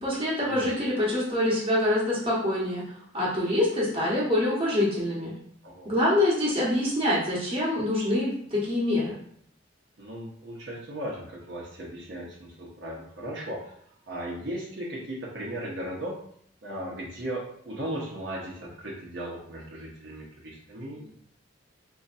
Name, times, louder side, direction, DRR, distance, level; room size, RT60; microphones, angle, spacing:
voice 1, 0.0-2.8 3.1-5.3 5.8-9.1, left 1 dB, 30° right, -7 dB, 1.2 m, -25 dB
voice 2, 10.0-16.2 16.6-21.1, right 1 dB, 70° right, -4 dB, 0.9 m, -37 dB
4.0 x 2.9 x 2.5 m, 0.65 s
head